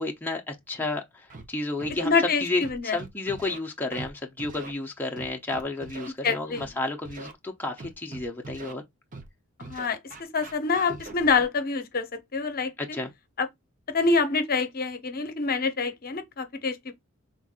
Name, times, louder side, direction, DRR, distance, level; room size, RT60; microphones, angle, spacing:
voice 1, 0.0-2.2 2.4-8.8 12.8-13.1, left 2 dB, 10° left, 0.7 m, -32 dB
Scratching (performance technique), 1.3-1.4 1.8-2.1 2.6-3.6 3.9-4.1 4.4-4.7 5.2-6.1 6.5-6.7 7.1-7.3 7.8-8.7 9.1-9.3 9.6-11.4, right 2 dB, 40° right, 0.9 m, -41 dB
voice 2, 2.0-3.0 6.2-6.7 9.6-13.0 13.4-13.5 13.9-16.9, left 4 dB, 45° left, 0.8 m, -26 dB
5.8 x 3.7 x 2.4 m
head